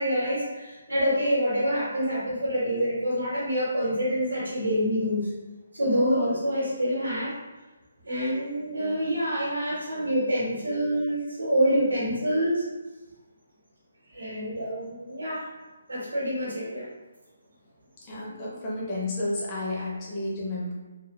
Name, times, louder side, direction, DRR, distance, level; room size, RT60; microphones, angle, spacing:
voice 1, 0.0-5.3 5.7-7.3 8.0-12.6 14.1-15.5 15.9-16.8, equal, 85° right, -7 dB, 1.3 m, -26 dB
voice 2, 18.0-20.7, left 2 dB, 30° left, -6 dB, 0.9 m, -31 dB
3.6 x 2.5 x 2.4 m, 1.2 s
figure-of-eight pair, 145°, 0 cm